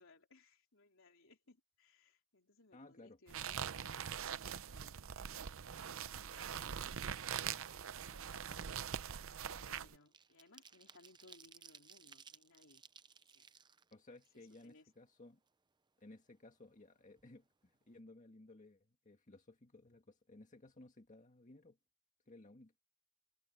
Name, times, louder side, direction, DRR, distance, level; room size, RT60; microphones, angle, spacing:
voice 1, 0.0-5.0 5.6-7.5 7.9-8.7 9.5-12.8 13.3-13.5 14.3-14.9, left 3 dB, 65° left, 3.7 m, -66 dB
voice 2, 2.7-3.2 13.9-15.4 16.0-21.8 22.3-22.7, left 2 dB, 35° left, 1.9 m, -58 dB
sound 1, 3.3-10.0, right 8 dB, 70° right, 0.7 m, -43 dB
sound 2, 9.8-15.1 15.5-15.6 15.9-16.9 17.2-17.3 17.6-17.9, right 6 dB, 20° right, 0.6 m, -61 dB
head